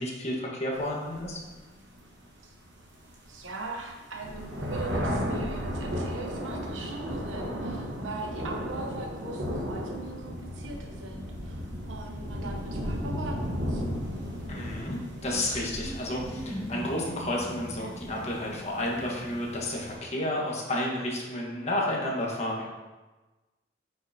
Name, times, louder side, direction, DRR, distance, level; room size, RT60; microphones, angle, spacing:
voice 1, 0.0-1.4 14.5-22.7, left 1 dB, 35° left, -2 dB, 1.4 m, -31 dB
sound 1, 0.7-20.0, equal, 65° right, 1.4 m, -35 dB
voice 2, 3.3-13.8, right 2 dB, 85° right, 1 dB, 1.0 m, -40 dB
sound 2, 15.8-20.4, equal, 5° right, 0.5 m, -42 dB
8.6 x 6.0 x 2.8 m, 1.2 s
head